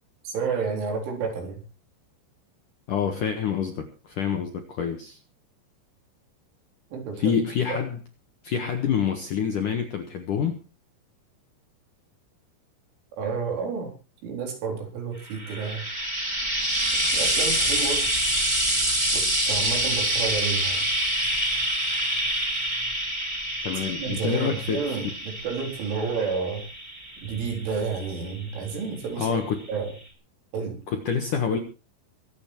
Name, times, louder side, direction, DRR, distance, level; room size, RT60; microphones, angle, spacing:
voice 1, 0.2-1.6 6.9-7.4 7.7-7.8 13.2-13.9 14.2-15.9 17.1-18.0 19.1-20.9 23.8-26.6 27.2-29.4 29.7-29.9 30.5-30.8, right 5 dB, 75° right, 2 dB, 6.4 m, -30 dB
voice 2, 2.9-5.2 7.2-8.0 8.4-10.6 23.6-24.8 29.2-29.6 30.9-31.6, left 7 dB, 65° left, 5 dB, 2.1 m, -27 dB
Frying (food), 15.3-28.7 29.7-29.8, right 1 dB, 10° right, 3.1 m, -27 dB
23.5 x 8.8 x 4.5 m, 0.33 s
omnidirectional pair, 5.6 m